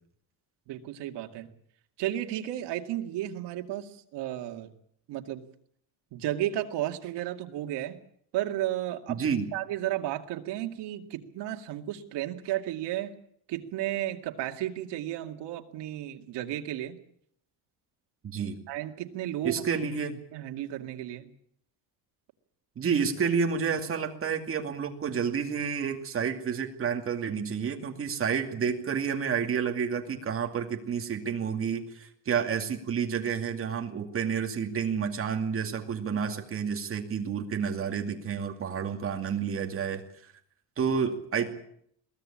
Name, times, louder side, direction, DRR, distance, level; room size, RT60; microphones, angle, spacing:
voice 1, 0.7-1.5 2.0-4.7 5.1-5.4 6.1-8.0 8.3-9.2 9.5-13.1 13.5-17.0 18.7-19.6 20.3-21.3, right 13 dB, 75° right, 5 dB, 2.3 m, -33 dB
voice 2, 9.1-9.5 18.2-18.6 19.4-20.2 22.8-40.0 40.8-41.5, right 6 dB, 30° right, 4 dB, 2.4 m, -30 dB
22.5 x 16.0 x 8.7 m, 0.68 s
cardioid pair, 170°, 42 cm